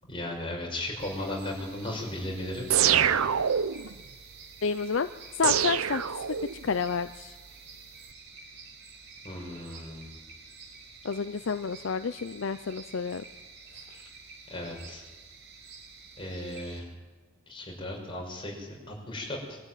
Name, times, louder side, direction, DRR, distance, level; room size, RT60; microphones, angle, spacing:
voice 1, 0.0-3.1 9.2-10.1 14.5-15.0 16.2-16.9 17.5-19.6, left 1 dB, 25° left, -1 dB, 5.9 m, -36 dB
sound 1, 0.8-16.8, right 4 dB, 60° right, 4.8 m, -49 dB
sound 2, 2.7-3.9 5.4-6.7, right 8 dB, 85° right, 0.7 m, -25 dB
voice 2, 4.6-5.1 5.4-6.0 6.6-7.3 11.0-13.2, left 5 dB, 60° left, 11 dB, 0.5 m, -29 dB
23.5 x 13.0 x 9.1 m, 1.3 s
head